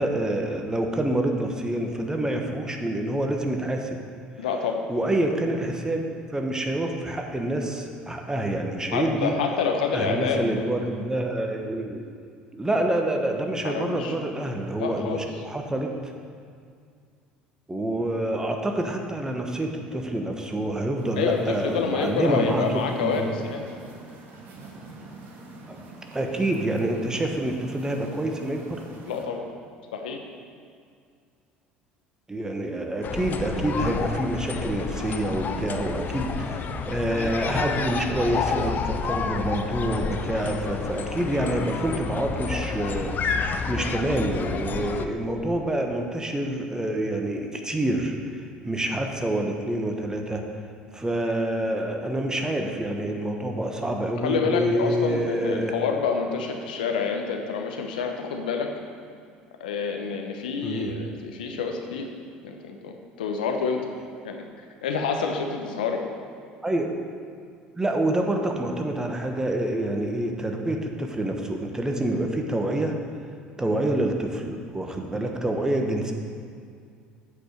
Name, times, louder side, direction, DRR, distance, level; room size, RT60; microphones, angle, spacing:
voice 1, 0.0-4.0 4.9-6.0 6.3-9.3 9.9-12.0 12.5-16.1 17.7-23.3 25.7-25.8 26.1-28.8 32.3-50.4 50.9-55.7 60.6-60.9 66.6-66.9 67.8-72.9 73.6-76.1, right 1 dB, 15° right, 3 dB, 1.2 m, -27 dB
voice 2, 4.4-4.9 8.9-10.6 13.6-14.2 14.8-15.2 21.2-23.7 29.1-29.4 29.9-30.2 54.2-58.7 59.6-62.1 62.4-63.8 64.2-64.4 64.8-66.0, left 5 dB, 85° left, 3 dB, 1.0 m, -28 dB
sound 1, 21.0-29.2, right 2 dB, 50° right, 1.7 m, -45 dB
sound 2, 33.0-45.1, left 5 dB, 40° left, 0.6 m, -30 dB
8.5 x 5.2 x 6.5 m, 2.2 s
hypercardioid pair, 65°, 5 cm